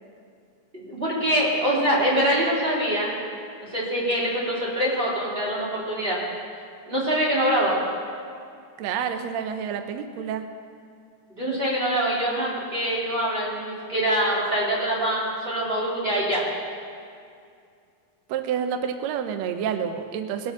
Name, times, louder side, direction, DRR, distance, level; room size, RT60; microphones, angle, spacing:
voice 1, 0.7-3.1 3.7-6.2 6.9-7.8 11.3-16.4, right 1 dB, 15° right, -6 dB, 2.9 m, -24 dB
voice 2, 8.8-10.4 18.3-20.5, right 8 dB, 90° right, 7 dB, 1.5 m, -28 dB
20.5 x 7.1 x 7.1 m, 2.3 s
omnidirectional pair, 4.3 m